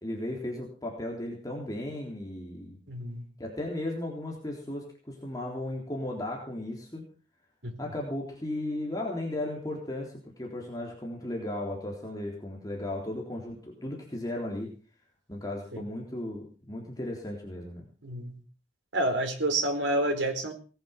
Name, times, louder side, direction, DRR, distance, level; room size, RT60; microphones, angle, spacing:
voice 1, 0.0-2.8 3.4-7.0 7.8-14.7 15.3-17.8, left 1 dB, 20° left, -1 dB, 3.7 m, -35 dB
voice 2, 2.9-3.2 7.6-7.7 15.7-15.8 18.0-18.4 18.9-20.5, right 1 dB, 85° right, 6 dB, 4.4 m, -29 dB
19.5 x 10.5 x 6.0 m, 0.39 s
head